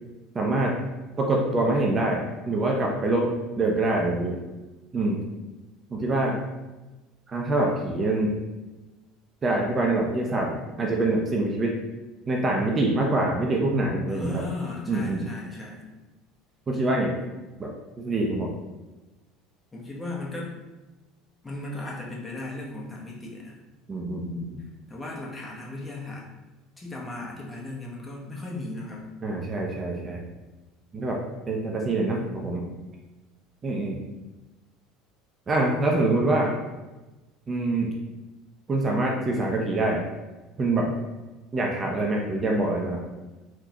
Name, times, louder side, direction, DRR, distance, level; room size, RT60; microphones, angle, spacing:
voice 1, 0.3-0.7 1.2-4.4 4.9-5.2 5.9-6.4 7.3-8.3 9.4-11.7 12.3-14.4 14.9-15.2 16.7-17.1 17.6-18.5 23.9-24.6 29.2-30.2 30.9-31.2 31.5-32.7 33.6-34.0 35.5-36.5 37.5-37.9 38.7-40.0 40.6-40.9 41.5-43.0, right 2 dB, 30° right, -1 dB, 0.6 m, -25 dB
voice 2, 14.1-15.8 19.7-20.5 21.4-23.6 24.9-26.2 26.8-29.0, left 2 dB, 20° left, -3 dB, 1.0 m, -36 dB
3.7 x 2.3 x 2.9 m, 1.1 s
hypercardioid pair, 70°, 0 cm